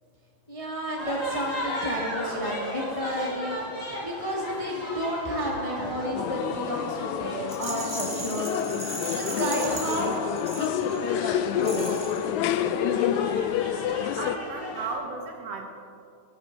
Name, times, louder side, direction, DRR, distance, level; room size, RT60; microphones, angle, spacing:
voice 1, 0.5-3.6 4.0-10.2 10.6-12.1, equal, 15° left, -3 dB, 1.7 m, -31 dB
sound 1, 1.0-14.9, equal, 40° left, 4.6 m, -37 dB
sound 2, 6.2-14.4, left 10 dB, 80° left, 1.9 m, -28 dB
Rattle, 7.5-11.1 11.6-12.3, right 1 dB, 10° right, 1.6 m, -37 dB
voice 2, 14.2-15.7, right 4 dB, 65° right, 2 dB, 2.1 m, -34 dB
20.5 x 11.5 x 4.1 m, 2.5 s
omnidirectional pair, 3.3 m